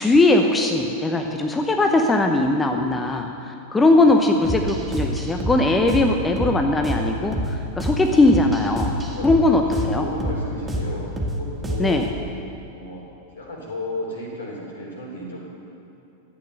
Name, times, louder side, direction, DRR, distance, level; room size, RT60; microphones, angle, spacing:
voice 1, 0.0-9.0 9.2-10.1 11.8-12.1, left 2 dB, 15° left, 3 dB, 0.8 m, -19 dB
voice 2, 1.4-1.7 8.0-8.4 9.0-12.1 12.7-13.0 13.3-15.4, left 1 dB, 70° left, -2 dB, 3.3 m, -34 dB
sound 1, 4.4-12.1, equal, 15° right, 2.0 m, -27 dB
13.0 x 8.7 x 6.6 m, 2.7 s
figure-of-eight pair, 90°, 0 cm